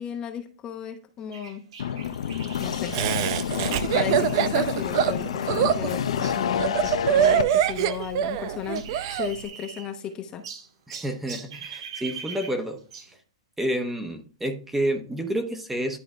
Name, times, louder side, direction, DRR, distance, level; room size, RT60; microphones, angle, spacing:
voice 1, 0.0-1.6 2.6-2.9 3.5-10.4, left 7 dB, 25° left, 5 dB, 0.9 m, -35 dB
sound 1, 1.3-8.1 8.4-10.1 10.4-13.2, right 6 dB, 70° right, 1.7 m, -43 dB
Residual for orchestral intro sound, 1.8-7.4, left 8 dB, 80° left, 0.6 m, -28 dB
Laughter, 2.9-9.3, right 9 dB, 50° right, 0.6 m, -24 dB
voice 2, 10.9-12.8 13.6-16.0, right 1 dB, 5° right, 5 dB, 1.0 m, -29 dB
11.0 x 3.8 x 3.3 m, 0.39 s
hypercardioid pair, 135°, 3 cm